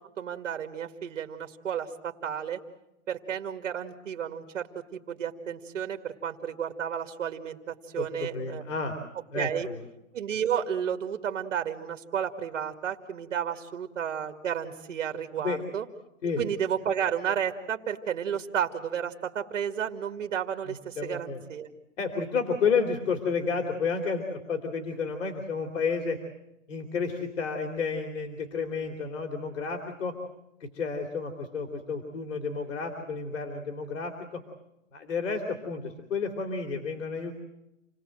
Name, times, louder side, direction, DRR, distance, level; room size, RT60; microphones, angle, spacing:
voice 1, 0.2-2.6 3.1-8.6 9.4-9.7 10.1-15.9 16.4-21.7, right 8 dB, 65° right, 6 dB, 2.1 m, -32 dB
voice 2, 8.0-8.9 9.3-9.8 15.4-15.6 16.2-16.4 20.7-21.4 22.0-26.2 26.7-30.1 30.6-34.4 34.9-37.3, left 5 dB, 70° left, 3 dB, 3.2 m, -31 dB
28.5 x 18.5 x 7.8 m, 0.91 s
hypercardioid pair, 160°, 40 cm